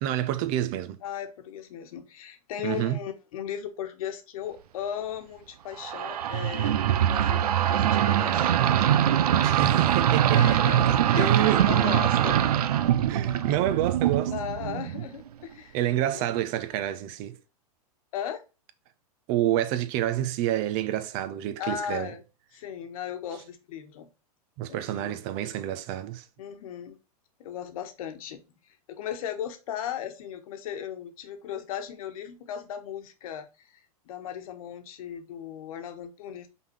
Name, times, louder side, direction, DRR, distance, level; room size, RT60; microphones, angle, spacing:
voice 1, 0.0-1.0 2.6-3.0 9.4-10.6 11.2-11.9 13.1-14.3 15.7-17.3 19.3-22.1 24.6-26.2, right 12 dB, 45° right, 1.0 m, -28 dB
voice 2, 1.0-8.5 10.3-12.4 14.3-16.3 18.1-18.4 21.6-22.2 22.5-24.1 24.7-25.2 26.4-27.0 27.4-36.5, left 9 dB, 65° left, 1.4 m, -37 dB
sound 1, 5.8-15.1, right 10 dB, 80° right, 0.7 m, -23 dB
5.6 x 4.1 x 5.5 m
hypercardioid pair, 120°, 19 cm